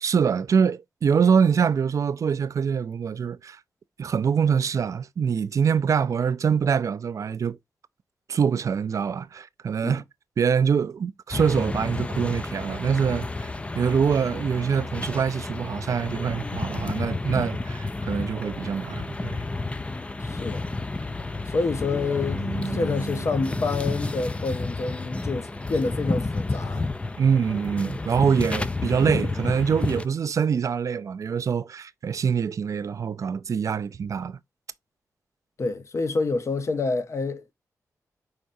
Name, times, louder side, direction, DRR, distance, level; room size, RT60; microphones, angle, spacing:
voice 1, 0.0-3.6 4.0-7.6 8.3-10.0 10.4-13.5 13.8-19.4 27.2-34.4, right 6 dB, 60° right, 0.4 m, -24 dB
sound 1, 11.3-30.1, left 2 dB, 20° left, 0.4 m, -31 dB
voice 2, 20.2-20.6 21.5-26.9 35.6-37.5, left 3 dB, 50° left, 0.8 m, -28 dB
sound 2, 21.8-25.0, right 1 dB, 10° right, 0.9 m, -36 dB
4.8 x 4.3 x 2.6 m
cardioid pair, 80°, 6 cm